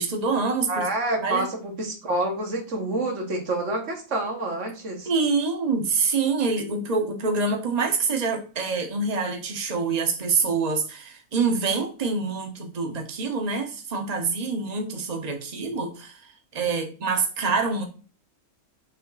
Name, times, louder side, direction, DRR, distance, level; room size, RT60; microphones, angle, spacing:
voice 1, 0.0-0.9 1.2-1.5 5.0-17.8, right 4 dB, 30° right, 3 dB, 1.2 m, -26 dB
voice 2, 0.7-5.1, right 2 dB, 60° right, 3 dB, 1.8 m, -28 dB
6.8 x 3.6 x 4.0 m, 0.37 s
omnidirectional pair, 1.4 m